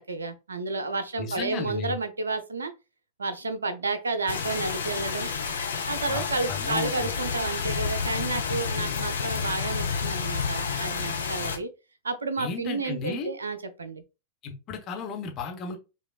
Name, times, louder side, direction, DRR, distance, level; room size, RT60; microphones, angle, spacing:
voice 1, 0.0-2.7 3.2-5.3 5.9-11.7 12.0-14.0, right 3 dB, 75° right, 0.5 m, -31 dB
voice 2, 1.2-1.9 6.1-7.1 12.4-13.3 14.4-15.8, left 4 dB, 35° left, 1.0 m, -34 dB
sound 1, 4.3-11.6, left 6 dB, 70° left, 0.6 m, -30 dB
5.0 x 2.3 x 2.4 m
figure-of-eight pair, 90°, 0 cm